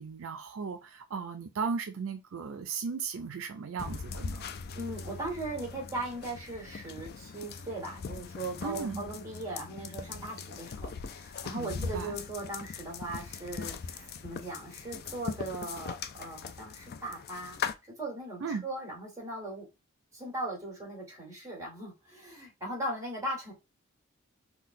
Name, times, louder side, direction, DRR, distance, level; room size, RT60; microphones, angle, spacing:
voice 1, 0.0-4.4 8.6-9.1 11.5-12.2 18.4-18.6, right 5 dB, 70° right, 0.5 m, -36 dB
sound 1, 3.8-17.7, left 5 dB, 45° left, 0.3 m, -40 dB
voice 2, 4.8-17.6 18.0-19.6 20.1-23.5, right 2 dB, 15° right, 1.7 m, -39 dB
3.8 x 2.3 x 2.6 m
head